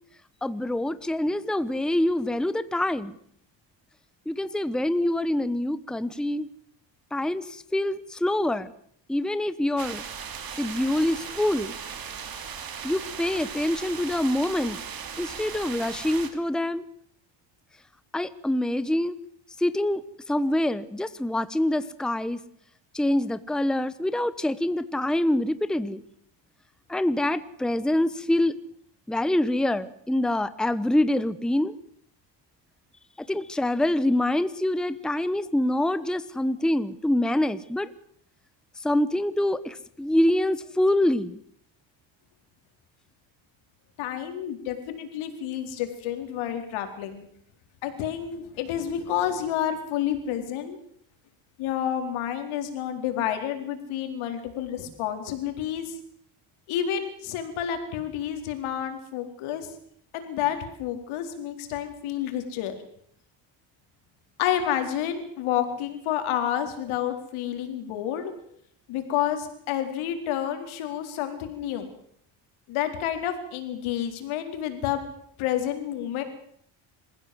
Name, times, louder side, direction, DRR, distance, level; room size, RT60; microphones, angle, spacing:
voice 1, 0.4-3.1 4.3-6.5 7.1-8.7 9.1-10.0 10.6-11.7 12.8-14.8 15.2-16.8 18.1-19.2 19.6-20.0 20.3-22.4 22.9-26.0 26.9-28.6 29.1-31.7 33.2-37.9 38.8-41.4, left 1 dB, ahead, 14 dB, 1.0 m, -25 dB
sound 1, 9.8-16.3, right 7 dB, 45° right, 3.5 m, -37 dB
voice 2, 44.0-47.2 47.8-50.8 51.6-55.9 56.7-59.7 60.1-62.8 64.4-68.3 68.9-71.9 72.7-75.0 75.4-76.2, left 10 dB, 85° left, 6 dB, 4.3 m, -29 dB
26.5 x 15.5 x 7.9 m, 0.67 s
cardioid pair, 110°, 47 cm